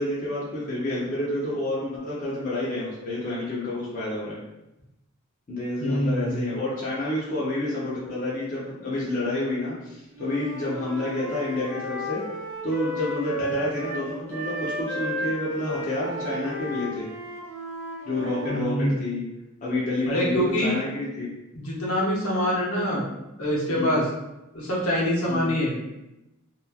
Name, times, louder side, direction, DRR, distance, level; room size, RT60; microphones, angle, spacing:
voice 1, 0.0-4.4 5.5-12.2 12.6-17.1 18.1-19.2 19.6-21.3 23.7-24.0 25.3-25.6, left 1 dB, 35° left, -7 dB, 0.5 m, -29 dB
voice 2, 5.8-6.5 18.5-19.0 20.1-20.8 21.5-23.0 23.4-24.1 24.5-25.8, equal, 70° left, -5 dB, 0.8 m, -25 dB
Wind instrument woodwind instrument, 10.1-14.0 14.3-18.6, equal, 10° right, 0.8 m, -33 dB
2.9 x 2.2 x 2.3 m, 0.94 s
head